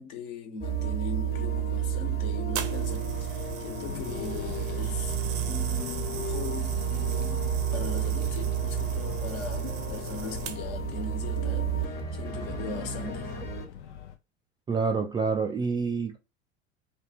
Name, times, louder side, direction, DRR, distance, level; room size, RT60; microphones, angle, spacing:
voice 1, 0.0-5.2 5.5-13.3, left 5 dB, 55° left, 1.3 m, -40 dB
sound 1, 0.6-13.7, right 7 dB, 30° left, 1.2 m, -31 dB
sound 2, 2.6-10.9 11.6-11.8, right 9 dB, 40° right, 0.7 m, -40 dB
Fixed-wing aircraft airplane, 3.9-14.2, left 9 dB, 80° left, 0.7 m, -42 dB
voice 2, 14.7-16.2, right 5 dB, 15° right, 0.3 m, -27 dB
3.4 x 2.4 x 2.8 m
hypercardioid pair, 85°, 34 cm